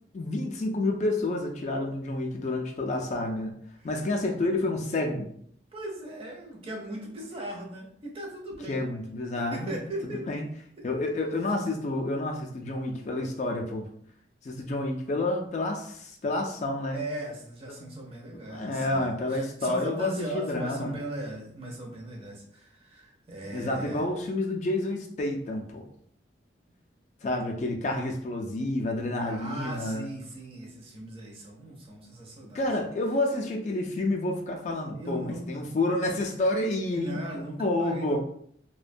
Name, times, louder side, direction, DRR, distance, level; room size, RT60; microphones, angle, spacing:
voice 1, 0.1-3.5 3.8-5.3 8.7-9.7 10.0-10.4 10.8-13.8 14.4-17.0 17.8-17.9 18.5-21.0 23.5-25.9 27.2-30.1 32.5-37.2 37.6-38.2, left 2 dB, 40° left, 1 dB, 0.3 m, -29 dB
voice 2, 5.7-8.9 9.3-10.3 16.9-24.1 29.3-32.7 34.9-35.5 36.9-38.2, right 1 dB, 30° right, -1 dB, 0.5 m, -38 dB
2.4 x 2.1 x 2.5 m, 0.64 s
head